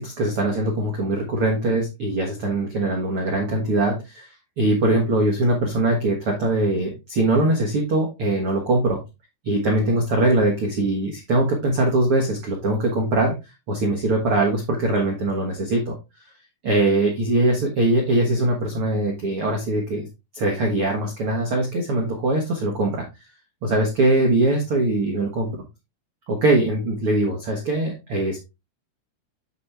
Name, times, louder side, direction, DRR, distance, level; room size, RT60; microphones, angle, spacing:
voice 1, 0.0-4.3 4.6-9.0 9.4-13.3 13.7-15.9 16.6-20.1 20.3-23.0 23.6-25.5 26.3-28.4, right 2 dB, 90° right, 0 dB, 1.2 m, -22 dB
8.2 x 5.2 x 3.3 m, 0.24 s
omnidirectional pair, 5.1 m